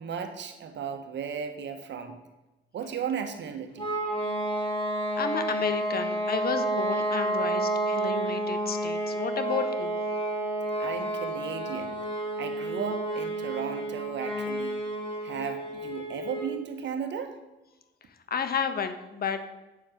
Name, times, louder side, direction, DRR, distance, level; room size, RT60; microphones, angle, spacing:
voice 1, 0.0-2.2 2.7-3.9 10.8-12.0 12.4-14.8 15.2-17.4, right 7 dB, 65° right, 7 dB, 1.5 m, -35 dB
sound 1, 3.8-16.6, right 1 dB, 25° left, 3.4 m, -30 dB
voice 2, 5.2-9.9 18.3-19.4, left 6 dB, 50° left, 9 dB, 1.3 m, -31 dB
8.7 x 7.5 x 6.6 m, 1.0 s
cardioid pair, 90°, 20 cm